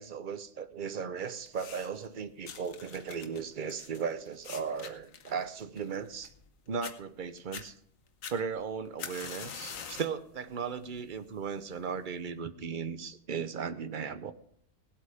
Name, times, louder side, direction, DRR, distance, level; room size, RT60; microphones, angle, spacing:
voice 1, 0.0-6.3 6.7-7.7 8.3-14.3, right 6 dB, 45° right, 12 dB, 0.8 m, -36 dB
sound 1, 1.5-2.1 2.4-6.5 6.8-6.9 7.4-7.7 8.2-10.2 10.6-11.0 11.8-11.9, left 7 dB, 70° left, 1.4 m, -44 dB
18.0 x 8.1 x 5.0 m, 0.63 s
omnidirectional pair, 1.5 m